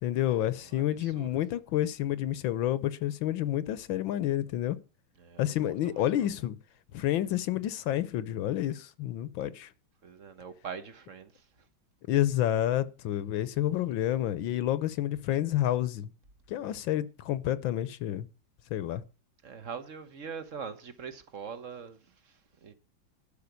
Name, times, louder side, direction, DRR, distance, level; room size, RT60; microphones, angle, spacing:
voice 1, 0.0-4.8 5.4-6.6 6.9-9.7 12.1-16.1 16.5-18.3 18.7-19.0, left 12 dB, 75° left, 1.5 m, -29 dB
voice 2, 0.6-1.4 5.2-6.3 10.0-11.7 19.4-22.7, right 6 dB, 45° right, 1.4 m, -43 dB
12.0 x 5.7 x 8.2 m
omnidirectional pair, 2.2 m